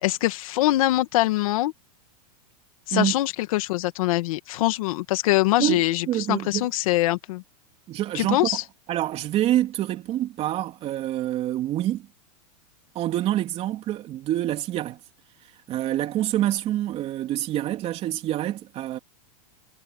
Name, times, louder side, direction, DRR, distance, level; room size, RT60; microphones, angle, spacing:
voice 1, 0.0-1.7 2.9-7.4 8.1-8.6, left 17 dB, 65° left, 2.0 m, -23 dB
voice 2, 5.6-6.7 7.9-8.5 8.9-12.1 13.0-15.0 15.4-19.0, right 13 dB, 30° right, 3.5 m, -26 dB
supercardioid pair, 140°, 19 cm